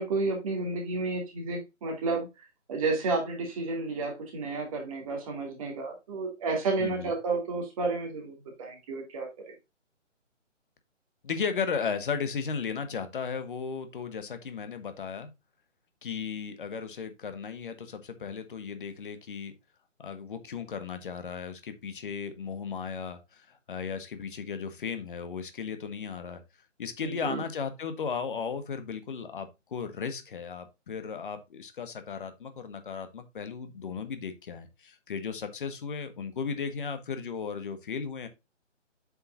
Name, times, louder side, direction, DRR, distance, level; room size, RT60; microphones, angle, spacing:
voice 1, 0.0-2.3 2.7-9.3 27.0-27.4, right 3 dB, 25° right, 2.3 m, -31 dB
voice 2, 6.8-7.1 11.2-15.3 16.0-19.5 20.0-26.4 26.8-38.3, left 6 dB, 40° left, 1.4 m, -35 dB
8.1 x 5.6 x 2.5 m
figure-of-eight pair, 155°, 38 cm